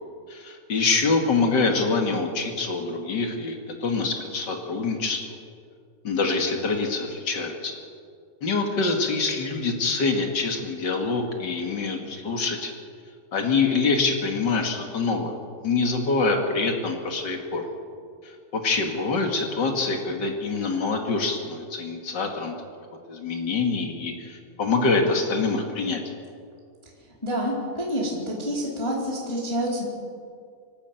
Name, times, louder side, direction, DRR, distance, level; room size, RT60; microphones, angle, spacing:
voice 1, 0.3-5.4 6.0-7.7 8.4-12.7 13.3-15.3 15.6-17.6 18.2-22.5 23.1-26.0, left 4 dB, 45° left, 3 dB, 1.4 m, -25 dB
voice 2, 27.2-29.8, equal, 5° left, -4 dB, 3.5 m, -28 dB
25.0 x 12.5 x 9.2 m, 2.2 s
omnidirectional pair, 5.0 m